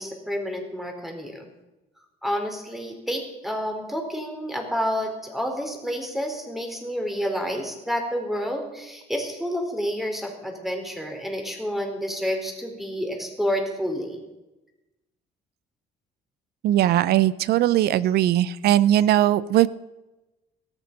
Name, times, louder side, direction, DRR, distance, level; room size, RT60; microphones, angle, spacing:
voice 1, 0.0-1.5 2.2-14.2, equal, ahead, 3 dB, 4.2 m, -29 dB
voice 2, 16.6-19.7, right 12 dB, 70° right, 19 dB, 0.7 m, -19 dB
18.0 x 13.5 x 5.4 m, 1.0 s
cardioid pair, 110°, 17 cm